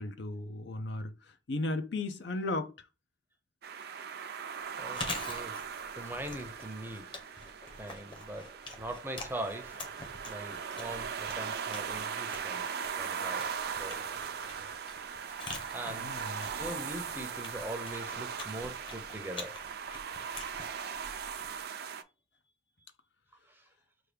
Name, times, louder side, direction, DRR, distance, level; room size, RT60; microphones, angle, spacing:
voice 1, 0.0-2.9 15.8-16.5, left 2 dB, 70° left, 0.6 m, -36 dB
sound 1, 3.6-22.0, right 7 dB, 60° right, 0.4 m, -39 dB
Chewing mastication, 4.7-21.6, left 2 dB, 30° left, 0.9 m, -46 dB
voice 2, 4.8-5.6 6.0-7.1 7.8-9.8 10.2-13.5 13.8-14.0 15.7-19.6 23.5-23.6, right 1 dB, 10° right, 0.6 m, -42 dB
5.9 x 2.3 x 3.4 m
head